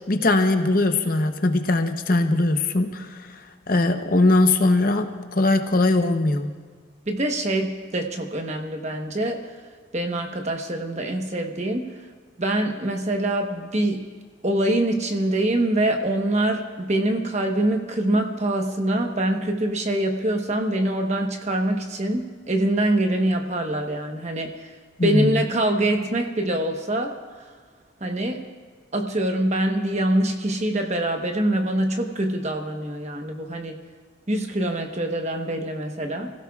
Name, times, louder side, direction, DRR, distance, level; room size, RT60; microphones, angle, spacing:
voice 1, 0.1-3.3 3.7-6.5 25.0-25.4, left 2 dB, 45° left, 7 dB, 0.8 m, -20 dB
voice 2, 7.1-9.5 9.9-11.9 12.4-14.1 14.4-24.7 25.0-27.5 28.0-28.4 28.9-33.8 34.3-36.3, right 1 dB, 35° right, 4 dB, 1.1 m, -24 dB
28.0 x 16.0 x 2.4 m, 1.5 s
head